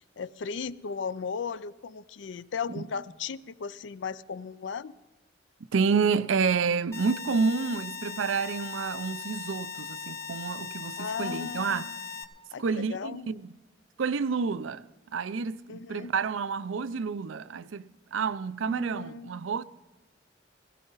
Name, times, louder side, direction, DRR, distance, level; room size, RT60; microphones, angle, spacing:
voice 1, 0.2-4.9 11.0-12.0 12.5-13.3 15.7-16.1 18.6-19.5, left 5 dB, 70° left, 0.4 m, -36 dB
voice 2, 5.7-12.0 12.6-13.5 14.0-14.8 15.1-19.6, right 5 dB, 90° right, 0.5 m, -29 dB
sound 1, 6.9-12.2, left 6 dB, 15° left, 0.8 m, -39 dB
16.0 x 16.0 x 4.0 m
head